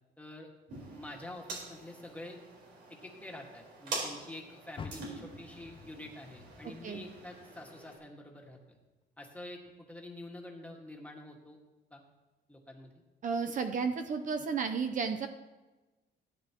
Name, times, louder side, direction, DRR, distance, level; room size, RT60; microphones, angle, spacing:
voice 1, 0.2-0.5 0.9-2.4 2.9-8.8 9.2-11.6 11.9-12.0 12.5-12.9, left 1 dB, 10° left, 0 dB, 1.8 m, -47 dB
sound 1, 0.7-8.0, right 3 dB, 80° right, 4.4 m, -45 dB
Car, 4.7-8.0 8.4-9.8 10.2-10.3 10.9-11.0, left 6 dB, 30° left, 0.7 m, -50 dB
voice 2, 13.2-15.3, right 5 dB, 45° right, 6 dB, 0.7 m, -32 dB
17.0 x 9.8 x 3.0 m, 1.2 s
cardioid pair, 130°, 18 cm